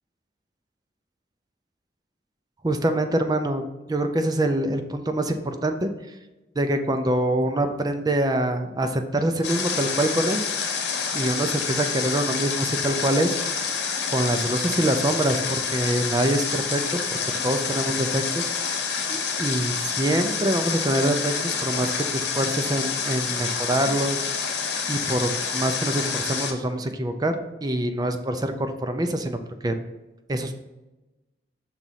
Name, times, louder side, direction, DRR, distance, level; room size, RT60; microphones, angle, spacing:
voice 1, 2.6-3.6 3.9-5.9 6.6-10.4 11.1-13.3 14.1-17.0 17.4-18.5 19.1-24.3 24.9-29.7 30.3-30.5, right 1 dB, 20° right, 7 dB, 0.5 m, -25 dB
Water, 9.4-26.5, left 6 dB, 85° left, 1.1 m, -28 dB
6.1 x 4.0 x 5.7 m, 1.0 s
head